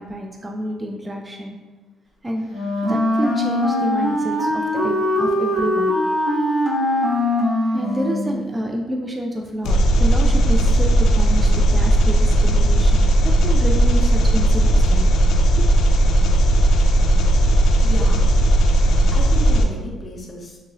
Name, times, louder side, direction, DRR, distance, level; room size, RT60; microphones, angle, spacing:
voice 1, 0.0-1.6 2.2-2.5 2.8-5.9 7.7-13.1 13.4-15.1 15.6-15.7, equal, 20° right, 1 dB, 0.3 m, -28 dB
Wind instrument woodwind instrument, 2.5-8.4, left 1 dB, 40° right, 0.9 m, -21 dB
Engine, 9.6-19.6, right 1 dB, 80° left, 0.3 m, -16 dB
voice 2, 17.8-18.3 18.6-18.7 19.1-20.6, left 1 dB, 35° left, 0 dB, 0.6 m, -33 dB
2.9 x 2.7 x 2.6 m, 1.2 s
cardioid pair, 90°, 0 cm